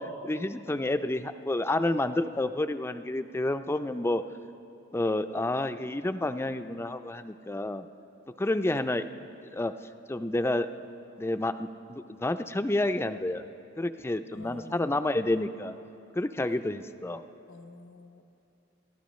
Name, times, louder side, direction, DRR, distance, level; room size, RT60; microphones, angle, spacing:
voice 1, 0.0-4.2 4.9-7.9 8.4-9.0 9.5-9.7 10.1-10.7 11.2-13.4 13.8-15.8 16.2-17.2, left 1 dB, 15° left, 10 dB, 0.4 m, -29 dB
voice 2, 14.3-15.1 17.5-18.2, left 2 dB, 80° left, 7 dB, 0.9 m, -48 dB
30.0 x 13.0 x 3.1 m, 2.7 s
head